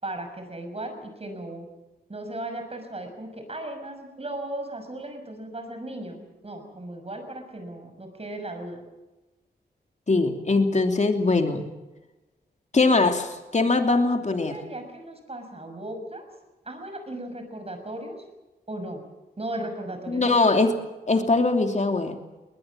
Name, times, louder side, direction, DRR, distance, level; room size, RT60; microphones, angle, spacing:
voice 1, 0.0-1.7 2.1-8.8 14.3-16.3 16.6-18.2 18.7-19.0 19.4-20.5 21.1-21.3, right 1 dB, 35° right, 6 dB, 6.2 m, -36 dB
voice 2, 10.1-11.6 12.7-14.6 20.1-20.8 21.1-22.2, left 3 dB, 45° left, 5 dB, 2.9 m, -21 dB
21.0 x 20.0 x 7.6 m, 1.1 s
cardioid pair, 65°, 17 cm